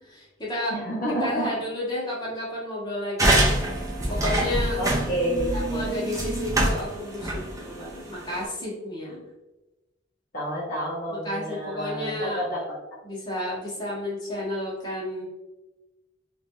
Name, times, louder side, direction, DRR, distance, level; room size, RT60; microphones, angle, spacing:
voice 1, 0.0-0.8 1.2-4.8 5.5-9.2 11.1-12.4 13.0-15.2, left 1 dB, 25° left, -6 dB, 1.1 m, -32 dB
voice 2, 0.7-1.5 4.8-5.9 10.3-12.6, equal, 50° left, -7 dB, 0.7 m, -29 dB
sound 1, 3.2-8.4, right 1 dB, 20° right, 0.5 m, -25 dB
3.1 x 2.4 x 2.6 m, 1.0 s
head